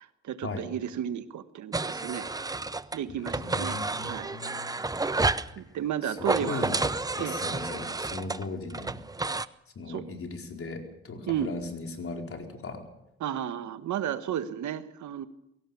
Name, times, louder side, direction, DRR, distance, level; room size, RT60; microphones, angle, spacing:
voice 1, 0.0-2.3 2.9-4.3 5.6-6.6 7.2-7.4 9.9-10.0 11.3-11.5 13.2-15.3, right 10 dB, 70° right, 11 dB, 1.5 m, -33 dB
sound 1, 1.7-3.0 3.3-5.5 6.2-9.5, right 3 dB, 10° right, 0.7 m, -30 dB
voice 2, 3.1-5.0 6.0-6.8 7.1-9.0 9.7-12.8, left 3 dB, 45° left, 2 dB, 4.7 m, -38 dB
23.5 x 17.0 x 7.2 m, 0.85 s
cardioid pair, 90°, 30 cm